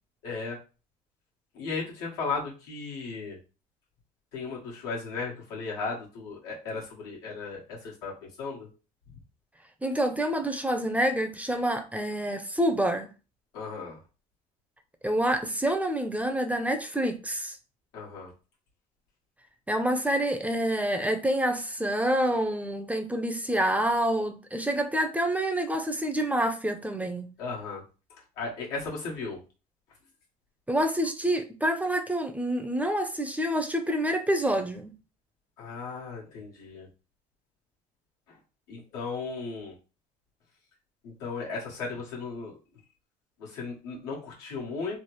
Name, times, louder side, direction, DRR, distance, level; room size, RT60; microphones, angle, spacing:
voice 1, 0.2-0.6 1.5-3.4 4.3-8.1 8.4-8.7 13.5-14.0 17.9-18.3 27.4-27.8 28.4-29.4 35.6-36.9 38.7-39.7 41.0-42.5 43.4-45.0, left 4 dB, 90° left, -3 dB, 1.4 m, -35 dB
voice 2, 9.8-13.1 15.0-17.6 19.7-27.3 30.7-34.9, right 1 dB, 10° right, 6 dB, 0.5 m, -27 dB
3.3 x 2.0 x 3.0 m, 0.33 s
supercardioid pair, 80°, 17 cm